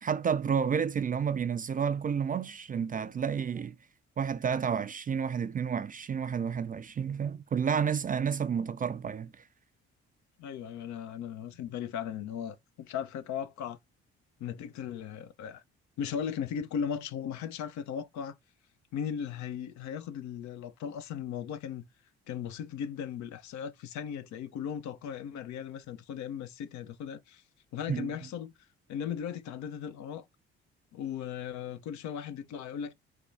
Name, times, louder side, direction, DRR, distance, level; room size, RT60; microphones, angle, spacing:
voice 1, 0.0-3.8 4.2-9.4 27.9-28.1, right 7 dB, 25° right, 0.4 m, -30 dB
voice 2, 10.4-13.8 14.4-15.6 16.0-18.4 18.9-21.9 22.3-27.4 27.7-28.5 28.9-30.3 30.9-32.9, left 8 dB, 60° left, 0.5 m, -37 dB
3.6 x 2.2 x 3.1 m
hypercardioid pair, 50°, 32 cm